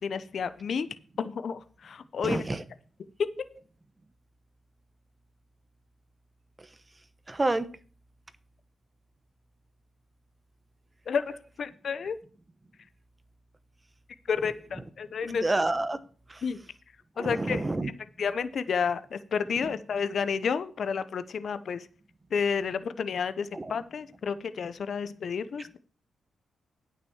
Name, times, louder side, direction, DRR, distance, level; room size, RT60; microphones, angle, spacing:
voice 1, 0.0-0.9 1.2-2.5 11.1-12.1 14.3-15.4 16.4-16.6 17.2-17.9 18.2-21.9 22.3-25.8, left 6 dB, 65° left, 13 dB, 0.8 m, -31 dB
voice 2, 2.2-2.6 7.3-7.7 15.3-16.0 16.3-16.4 17.2-17.9 23.5-23.7, right 2 dB, 25° right, 13 dB, 1.1 m, -28 dB
9.3 x 6.0 x 7.1 m, 0.39 s
cardioid pair, 60°, 0 cm